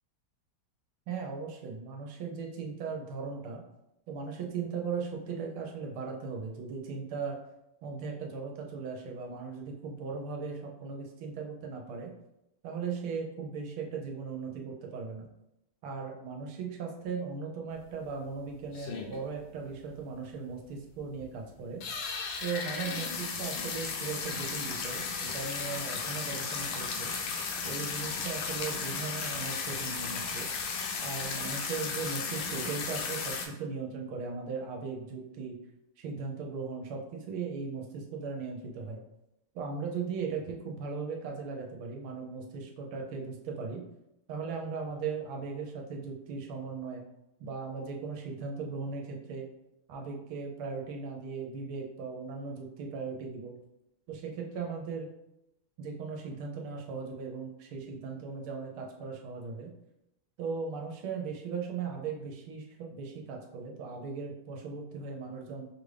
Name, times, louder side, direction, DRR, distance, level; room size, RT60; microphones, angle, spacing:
voice 1, 1.1-3.6 4.1-7.4 7.8-12.1 12.6-15.3 15.8-21.8 22.4-27.1 27.6-30.5 31.0-35.6 36.0-39.0 39.5-43.8 44.3-47.0 47.4-49.5 49.9-53.6 54.1-55.1 55.8-59.7 60.4-65.7, right 5 dB, 80° right, 1 dB, 1.5 m, -38 dB
sound 1, 17.8-17.9 18.2-18.3 18.7-19.4 19.7-19.8 20.0-20.1 20.5-20.6 21.1-21.3 21.7-33.5, left 5 dB, 90° left, 1.5 m, -35 dB
5.1 x 2.5 x 3.2 m, 0.87 s
omnidirectional pair, 2.4 m